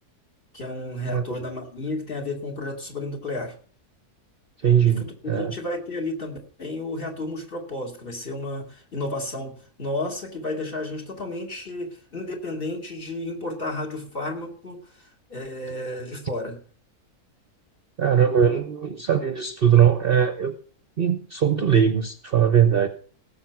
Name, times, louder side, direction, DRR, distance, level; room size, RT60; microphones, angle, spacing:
voice 1, 0.5-3.5 4.8-9.5 9.8-16.6, left 2 dB, 35° left, 5 dB, 2.7 m, -32 dB
voice 2, 1.0-1.4 4.6-5.5 18.0-20.5 21.0-22.9, right 8 dB, 45° right, 10 dB, 0.8 m, -20 dB
17.5 x 7.1 x 5.8 m, 0.43 s
omnidirectional pair, 1.6 m